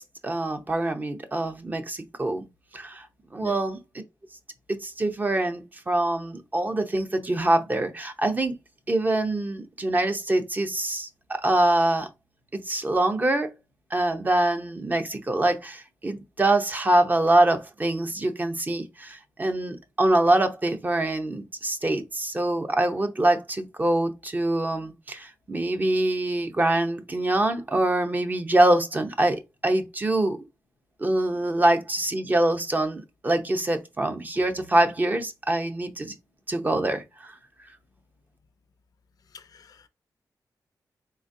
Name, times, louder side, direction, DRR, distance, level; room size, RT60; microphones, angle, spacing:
voice 1, 0.0-2.5 2.7-3.1 3.3-3.8 4.7-8.5 8.9-12.1 12.5-13.5 13.9-30.4 31.0-36.1 36.5-37.3, right 1 dB, 25° right, 0.6 m, -24 dB
voice 2, 39.3-39.9, left 7 dB, 65° left, 0.5 m, -44 dB
3.9 x 3.0 x 2.6 m
wide cardioid pair, 105°, 7 cm